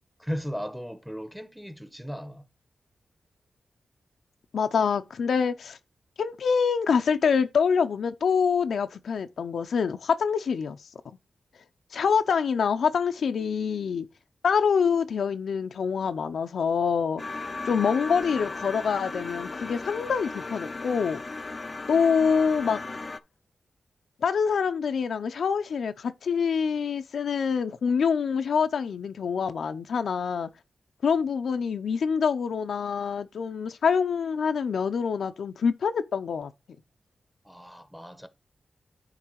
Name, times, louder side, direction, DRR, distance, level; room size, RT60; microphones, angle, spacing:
voice 1, 0.2-2.4 37.4-38.3, equal, ahead, 0.9 m, -36 dB
voice 2, 4.5-5.8 6.2-10.8 11.9-14.1 14.4-17.2 17.7-21.2 21.9-22.8 24.2-30.5 31.0-36.5, left 6 dB, 85° left, 0.6 m, -25 dB
sound 1, 17.2-23.2, left 3 dB, 35° left, 0.5 m, -36 dB
9.8 x 3.3 x 4.7 m
wide cardioid pair, 90°, 0 cm